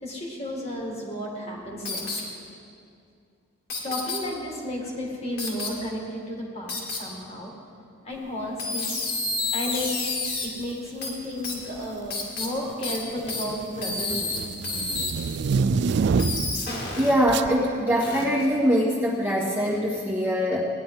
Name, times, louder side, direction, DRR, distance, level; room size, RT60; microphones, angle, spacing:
voice 1, 0.0-2.3 3.8-7.5 8.0-8.9 9.5-10.1 10.4-14.3, left 1 dB, 30° left, -2 dB, 2.1 m, -33 dB
sound 1, 1.9-2.2 3.7-4.2 5.4-5.7 6.7-7.0 8.6-10.5 11.0-11.1 11.4-11.5 12.1-12.5 12.8-13.0 13.3-13.4 13.8-14.4 14.6-15.1 16.2-17.1 18.0-18.2, left 3 dB, 55° left, 2.4 m, -29 dB
sound 2, 10.4-10.6 11.6-12.1 12.4-16.7 17.3-17.5, right 5 dB, 60° right, 0.3 m, -27 dB
voice 2, 16.9-20.6, equal, 10° right, -6 dB, 1.7 m, -23 dB
18.0 x 10.5 x 3.8 m, 2.3 s
head